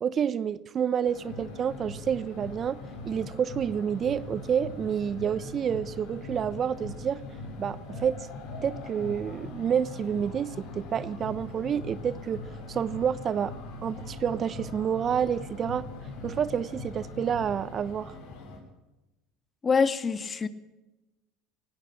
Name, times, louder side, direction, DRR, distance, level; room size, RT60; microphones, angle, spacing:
voice 1, 0.0-2.8 3.0-7.2 7.6-8.3 8.6-12.4 12.7-13.5 13.8-15.9 16.2-18.1, right 8 dB, 40° right, 1.0 m, -29 dB
sound 1, 1.0-18.6, left 2 dB, 70° left, 7.1 m, -41 dB
voice 2, 19.6-20.5, left 5 dB, 30° left, 1.9 m, -25 dB
19.5 x 17.0 x 8.7 m
hypercardioid pair, 85°, 0 cm